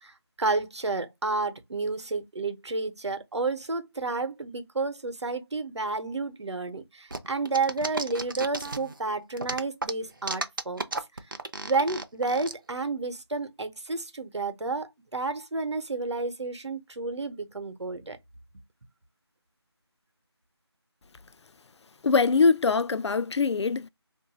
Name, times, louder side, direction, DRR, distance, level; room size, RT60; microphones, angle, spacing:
voice 1, 0.0-10.8 11.6-18.2, right 3 dB, 80° right, 0.8 m, -31 dB
sound 1, 7.1-9.0 9.4-12.5, right 2 dB, 50° right, 0.4 m, -33 dB
voice 2, 22.0-23.9, left 4 dB, 80° left, 0.4 m, -23 dB
2.6 x 2.3 x 3.9 m
figure-of-eight pair, 180°, 14 cm